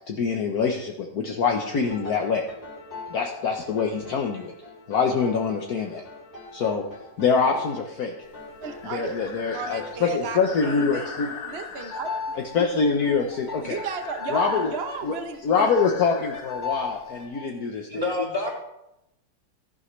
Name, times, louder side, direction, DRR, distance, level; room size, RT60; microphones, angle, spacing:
voice 1, 0.0-2.4 3.1-4.5 4.9-6.0 6.5-6.8 7.2-8.1 8.8-11.3 12.5-13.8 14.3-14.7 15.0-15.2 15.4-17.9, left 5 dB, 60° left, 2 dB, 1.5 m, -25 dB
sound 1, 1.8-17.5, left 4 dB, 35° left, 2.8 m, -39 dB
Breathing, 8.2-17.3, left 5 dB, 80° left, 2.0 m, -41 dB
voice 2, 8.6-11.1 11.4-12.3 13.6-15.7, right 5 dB, 45° right, 6 dB, 1.0 m, -34 dB
voice 3, 17.9-18.5, left 2 dB, 15° left, -4 dB, 3.3 m, -27 dB
15.0 x 11.0 x 3.3 m, 0.87 s
omnidirectional pair, 1.9 m